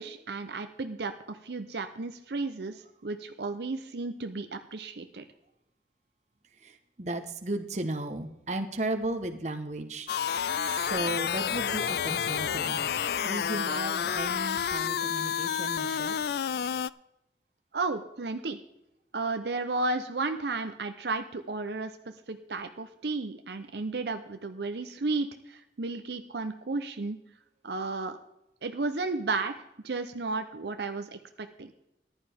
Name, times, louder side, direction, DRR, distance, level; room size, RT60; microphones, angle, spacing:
voice 1, 0.0-5.2 17.7-18.6 19.1-21.9 22.3-27.2 27.6-28.2 28.6-29.5 29.8-31.7, right 3 dB, 70° right, 8 dB, 0.7 m, -33 dB
voice 2, 6.6-10.3 10.6-12.8 13.2-16.4, right 2 dB, 40° right, 6 dB, 1.1 m, -35 dB
sound 1, 10.1-16.9, left 8 dB, 65° left, 0.3 m, -30 dB
14.5 x 11.0 x 3.5 m, 0.87 s
head